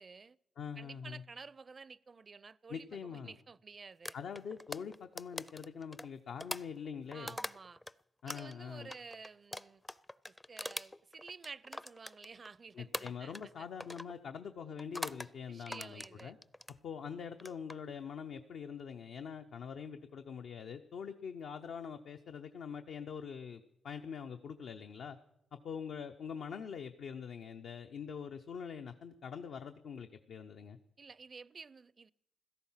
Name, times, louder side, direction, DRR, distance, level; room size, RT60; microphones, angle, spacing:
voice 1, 0.0-0.4 0.8-4.1 7.1-7.8 8.3-9.8 10.2-13.7 15.5-16.3 31.0-32.1, right 4 dB, 45° right, 0.4 m, -51 dB
voice 2, 0.6-1.2 2.7-3.3 4.1-7.4 8.2-8.9 12.7-16.4 16.8-25.2 25.6-30.8, left 7 dB, 80° left, 0.7 m, -44 dB
sound 1, 4.1-7.9 8.3-12.6 12.9-13.5 13.8-14.1 14.8-15.3 15.7-16.8 17.3-17.7, left 1 dB, 15° left, 0.5 m, -43 dB
16.5 x 13.5 x 5.7 m
cardioid pair, 70°, 0 cm